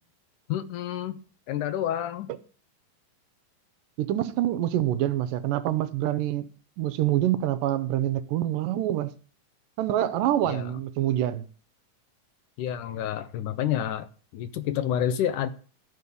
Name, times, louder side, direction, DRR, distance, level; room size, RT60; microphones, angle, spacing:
voice 1, 0.5-1.2 1.5-2.3 10.4-10.7 12.6-14.1 14.3-15.5, left 10 dB, 75° left, 2.1 m, -29 dB
voice 2, 4.0-6.5 6.8-9.1 9.8-11.4, right 12 dB, 80° right, 2.3 m, -26 dB
13.5 x 5.4 x 8.2 m
omnidirectional pair, 4.1 m